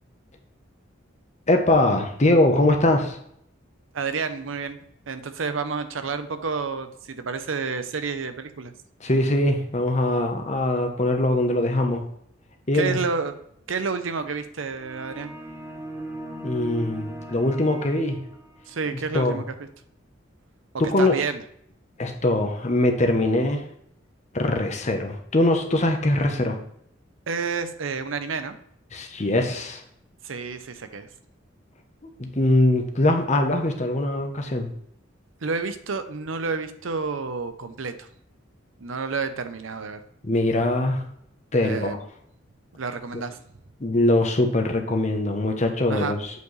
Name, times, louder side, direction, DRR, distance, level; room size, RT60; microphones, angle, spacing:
voice 1, 1.5-3.2 9.0-12.0 12.7-13.0 16.4-18.2 19.1-19.4 20.8-21.1 22.0-23.7 24.3-26.6 28.9-29.8 32.0-34.7 40.2-41.0 41.5-42.0 43.1-43.2 43.8-46.2, left 1 dB, 35° left, 4 dB, 0.9 m, -22 dB
voice 2, 3.9-4.8 5.1-8.7 12.7-13.4 13.7-15.3 18.7-19.5 21.0-21.4 27.3-28.6 30.2-31.1 35.4-38.1 38.8-40.0 41.6-42.0 42.7-43.4 45.9-46.2, right 4 dB, 80° right, 10 dB, 0.7 m, -30 dB
sound 1, 14.8-18.7, right 1 dB, 15° right, 0.7 m, -38 dB
8.2 x 4.6 x 3.2 m, 0.69 s
head